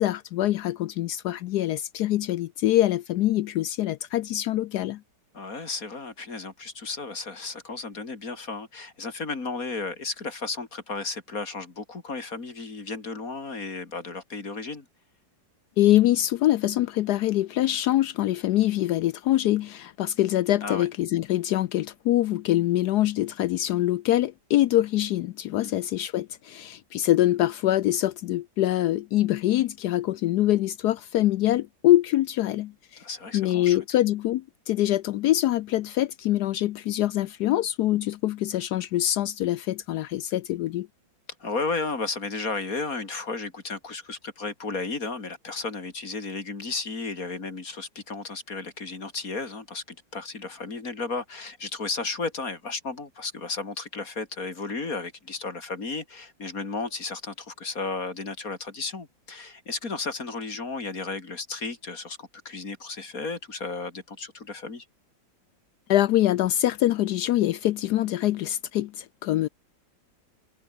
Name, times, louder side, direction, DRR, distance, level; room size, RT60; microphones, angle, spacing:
voice 1, 0.0-5.0 15.8-33.0 33.3-40.9 65.9-69.5, left 14 dB, 70° left, 1.0 m, -24 dB
voice 2, 5.3-14.9 20.6-20.9 25.6-25.8 33.0-33.8 41.4-64.9, left 3 dB, 45° left, 3.3 m, -34 dB
omnidirectional pair, 2.0 m